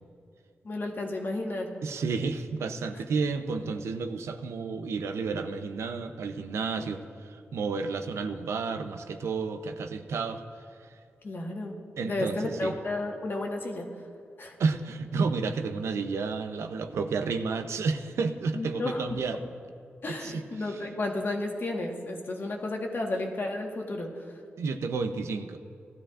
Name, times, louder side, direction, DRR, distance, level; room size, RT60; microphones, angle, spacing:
voice 1, 0.6-1.7 11.2-11.7 12.0-13.9 14.4-14.5 18.5-19.2 20.0-24.4, left 2 dB, 50° left, 1 dB, 1.5 m, -32 dB
voice 2, 1.8-7.0 7.3-10.4 12.0-12.7 14.6-19.4 20.2-20.8 24.6-25.6, right 4 dB, 85° right, 7 dB, 0.6 m, -31 dB
16.5 x 12.5 x 2.5 m, 2.3 s
cardioid pair, 65°, 5 cm